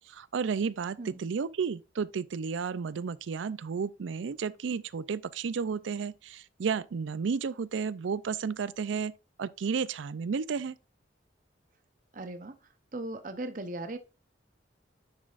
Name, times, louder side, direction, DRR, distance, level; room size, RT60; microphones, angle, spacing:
voice 1, 0.0-9.1 9.4-10.8, right 5 dB, 85° right, 0.4 m, -32 dB
voice 2, 12.1-12.6 12.9-14.0, right 2 dB, 45° right, 0.7 m, -38 dB
9.5 x 6.0 x 2.5 m
head